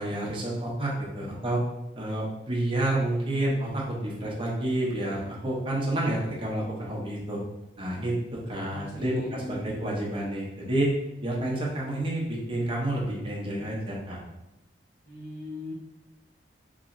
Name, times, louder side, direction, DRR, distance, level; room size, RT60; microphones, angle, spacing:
voice 1, 0.0-1.6 2.0-7.4 7.8-10.9 11.2-14.2, right 1 dB, 30° right, -4 dB, 0.6 m, -29 dB
voice 2, 8.7-9.6 15.0-15.7, left 1 dB, 65° left, -5 dB, 1.1 m, -38 dB
3.0 x 2.9 x 2.5 m, 0.93 s
head